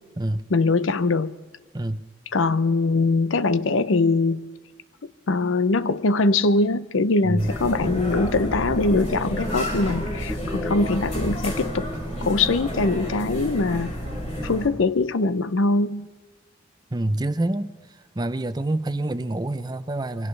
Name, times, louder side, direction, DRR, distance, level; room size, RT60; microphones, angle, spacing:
voice 1, 0.5-1.3 2.3-4.4 5.3-11.9 12.2-13.9 14.4-16.1, left 3 dB, 80° left, 0.6 m, -22 dB
sound 1, 7.4-14.7, equal, 35° left, 4.9 m, -30 dB
voice 2, 16.9-17.7 18.1-20.3, right 1 dB, 20° right, 0.5 m, -26 dB
24.5 x 17.5 x 3.3 m
head